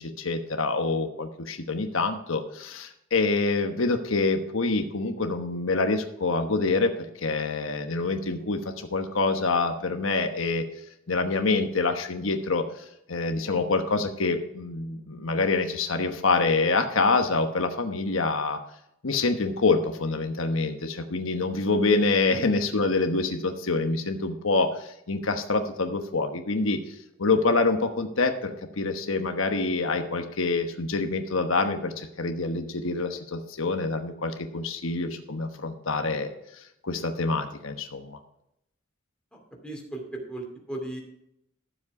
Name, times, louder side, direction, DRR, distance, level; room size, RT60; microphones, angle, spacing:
voice 1, 0.0-10.6 11.1-12.6 13.1-18.6 19.0-36.3 36.8-38.2, left 3 dB, 80° left, 6 dB, 1.1 m, -26 dB
voice 2, 39.3-41.0, right 2 dB, 5° left, 0 dB, 2.6 m, -37 dB
12.5 x 7.4 x 4.8 m, 0.79 s
head